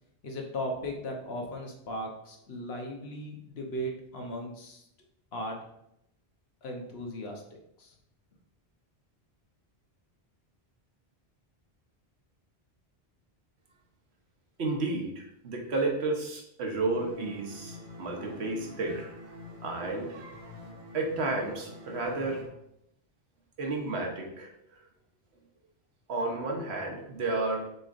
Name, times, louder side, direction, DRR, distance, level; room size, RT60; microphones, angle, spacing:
voice 1, 0.2-4.8 5.3-5.6 6.6-7.4 7.8-7.9, equal, 75° left, 1 dB, 1.2 m, -37 dB
voice 2, 14.6-19.4 19.6-20.5 20.9-22.4 23.6-24.5 26.1-27.7, right 2 dB, 85° right, 1 dB, 1.2 m, -32 dB
sound 1, 16.9-22.5, left 2 dB, 60° right, 1.1 m, -47 dB
6.6 x 3.2 x 2.5 m, 0.80 s
omnidirectional pair, 1.1 m